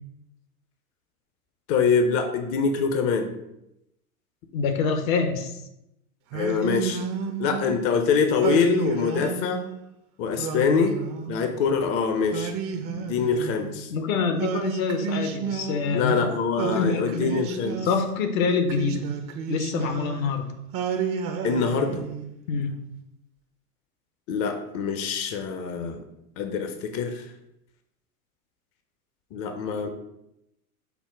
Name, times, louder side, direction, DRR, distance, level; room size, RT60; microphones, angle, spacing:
voice 1, 1.7-3.3 6.3-7.0 7.4-9.6 10.2-11.0 11.3-12.5 12.9-13.9 15.9-17.8 21.4-22.1 24.3-26.0 26.4-27.3 29.3-29.9, left 5 dB, 35° left, 5 dB, 0.5 m, -24 dB
voice 2, 4.5-5.6 13.9-16.2 16.6-17.3 17.9-19.1 19.5-20.5 22.5-22.8, left 5 dB, 65° left, 7 dB, 0.8 m, -26 dB
Singing, 6.3-7.8 8.4-9.7 10.3-11.7 12.3-13.8 14.4-16.2 16.6-18.2 18.7-20.3 20.7-22.3, right 7 dB, 35° right, 0.5 m, -31 dB
5.7 x 2.1 x 4.4 m, 0.84 s
hypercardioid pair, 95°, 44 cm